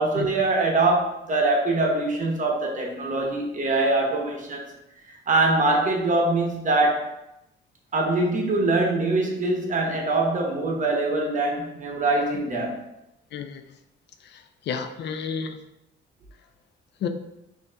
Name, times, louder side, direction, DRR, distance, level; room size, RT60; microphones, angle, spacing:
voice 1, 0.0-4.7 5.1-7.2 7.9-12.8, right 2 dB, 40° right, 1 dB, 0.8 m, -23 dB
voice 2, 13.3-13.6 14.2-15.6 17.0-17.1, left 6 dB, 60° left, 7 dB, 0.4 m, -31 dB
5.1 x 2.6 x 2.2 m, 0.84 s
cardioid pair, 90°, 20 cm